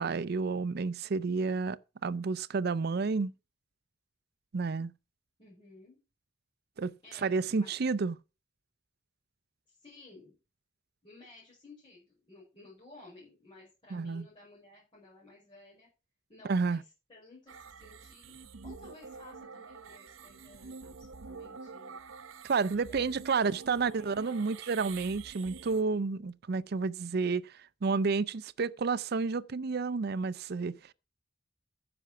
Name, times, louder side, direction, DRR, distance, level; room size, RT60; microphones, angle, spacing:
voice 1, 0.0-3.3 4.5-4.9 6.8-6.9 7.2-8.2 13.9-14.3 16.5-16.8 22.4-30.8, right 4 dB, 50° right, 0.5 m, -30 dB
voice 2, 5.4-6.0 7.0-7.8 9.7-10.4 11.0-15.9 16.3-16.8 17.1-22.0 22.7-23.2 23.4-24.3, left 2 dB, 25° left, 5.7 m, -55 dB
sound 1, 17.5-25.8, right 5 dB, 85° right, 0.8 m, -47 dB
9.8 x 6.8 x 5.9 m
head